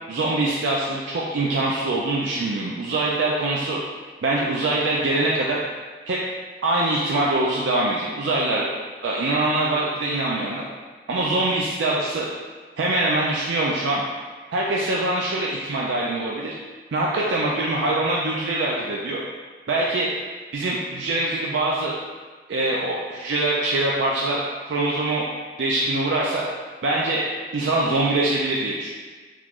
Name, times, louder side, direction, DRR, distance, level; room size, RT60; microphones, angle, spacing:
voice 1, 0.1-3.8 4.2-5.6 6.1-6.2 6.6-8.7 9.0-10.6 11.1-12.3 12.8-14.0 14.5-16.5 16.9-19.2 19.7-20.1 20.5-21.9 22.5-25.2 25.6-26.4 26.8-27.2 27.5-29.0, right 2 dB, 90° right, -4 dB, 0.4 m, -23 dB
3.6 x 3.1 x 2.4 m, 1.4 s
head